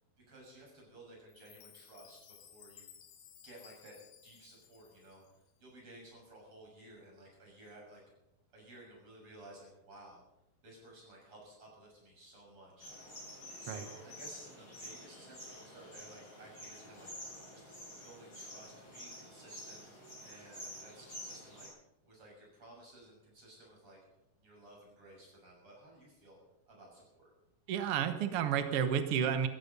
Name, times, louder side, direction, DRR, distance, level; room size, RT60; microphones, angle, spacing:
voice 1, 0.3-2.9 3.4-4.0 4.2-8.0 8.5-10.2 10.6-12.9 13.6-17.1 17.5-17.7 18.0-21.7 22.0-24.0 24.4-26.4 26.7-27.3, right 1 dB, 35° right, -2 dB, 7.4 m, -56 dB
Chime, 1.3-5.5, left 9 dB, 70° left, 3.1 m, -59 dB
sound 1, 12.8-21.7, equal, 25° left, 7.8 m, -49 dB
voice 2, 27.7-29.5, right 8 dB, 85° right, 8 dB, 1.2 m, -31 dB
17.5 x 14.5 x 5.4 m, 0.91 s
omnidirectional pair, 4.4 m